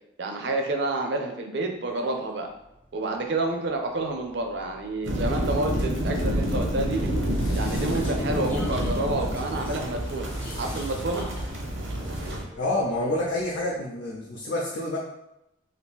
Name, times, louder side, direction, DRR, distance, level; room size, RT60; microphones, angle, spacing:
voice 1, 0.2-2.5 2.9-7.1 7.6-11.3, right 2 dB, 60° right, 3 dB, 0.5 m, -29 dB
Vehicle, 2.1-14.0, left 1 dB, 10° left, 0.4 m, -45 dB
sound 1, 5.0-12.4, equal, 85° right, 0.8 m, -28 dB
sound 2, 6.9-12.3, left 1 dB, 40° left, 1.0 m, -46 dB
voice 2, 12.6-15.0, left 1 dB, 75° left, -4 dB, 0.6 m, -28 dB
2.8 x 2.5 x 3.5 m, 0.87 s
head